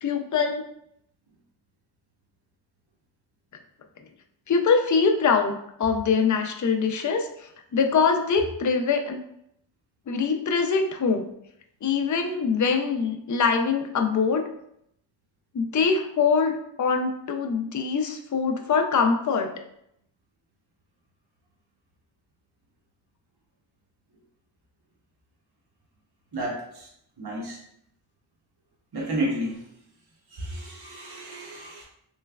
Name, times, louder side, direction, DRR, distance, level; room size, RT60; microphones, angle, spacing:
voice 1, 0.0-0.6 4.5-9.2 10.1-11.3 11.8-14.5 15.5-19.5, left 5 dB, 45° left, 4 dB, 0.5 m, -23 dB
voice 2, 26.3-26.9 27.2-27.6 28.9-29.6 30.3-31.8, right 1 dB, 60° right, -3 dB, 0.9 m, -31 dB
3.2 x 3.1 x 2.3 m, 0.73 s
wide cardioid pair, 50°, 45 cm